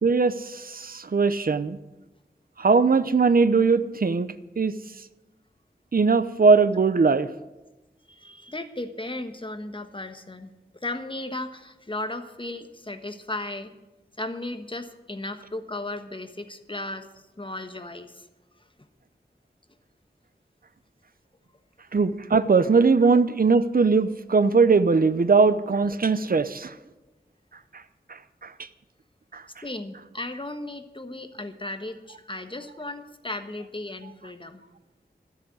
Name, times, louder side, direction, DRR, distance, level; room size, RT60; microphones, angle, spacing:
voice 1, 0.0-1.8 2.6-4.8 5.9-7.3 21.9-26.7 27.7-27.8 28.1-28.7 29.3-29.4, right 4 dB, 55° right, 13 dB, 0.7 m, -20 dB
voice 2, 8.1-10.5 10.8-13.7 14.2-18.3 18.6-18.7 29.6-34.6, left 2 dB, 30° left, 8 dB, 1.3 m, -35 dB
13.0 x 8.0 x 9.5 m, 1.1 s
wide cardioid pair, 65°, 18 cm